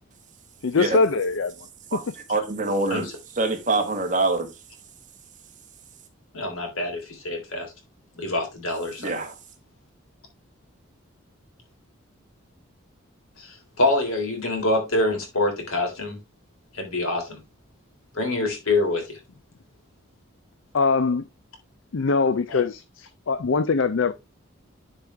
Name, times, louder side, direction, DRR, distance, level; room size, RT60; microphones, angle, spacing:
voice 1, 0.6-1.5 20.7-21.2 21.9-24.1, left 4 dB, 65° left, 0.5 m, -22 dB
voice 2, 2.3-4.6 9.0-9.4, right 3 dB, 35° right, 1.6 m, -25 dB
voice 3, 6.3-7.7 8.2-9.2 13.4-16.2 16.7-17.4 18.1-19.2 22.5-22.6, left 2 dB, 85° left, 3.6 m, -26 dB
10.5 x 4.9 x 3.3 m
head